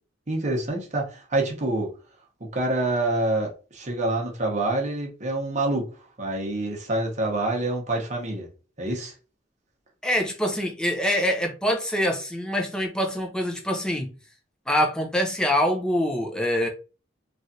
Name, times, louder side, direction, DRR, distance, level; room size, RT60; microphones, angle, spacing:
voice 1, 0.3-1.9 2.4-5.9 6.2-8.5 8.8-9.1, right 2 dB, 40° right, 0.9 m, -26 dB
voice 2, 10.0-14.1 14.7-16.7, equal, 5° left, 0.5 m, -25 dB
3.2 x 2.5 x 2.7 m
head